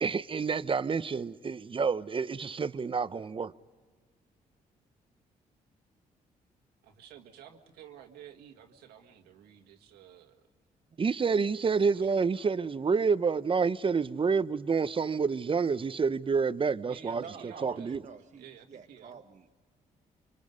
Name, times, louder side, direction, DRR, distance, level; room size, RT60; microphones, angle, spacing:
voice 1, 0.0-3.5 11.0-17.2 17.6-18.0, right 5 dB, 35° right, 0.8 m, -28 dB
voice 2, 6.8-10.4 11.2-12.5 16.9-17.9 18.4-19.2, right 9 dB, 90° right, 1.9 m, -52 dB
voice 3, 17.2-19.6, right 6 dB, 50° right, 1.1 m, -48 dB
27.5 x 24.5 x 5.4 m
supercardioid pair, 65°, 16 cm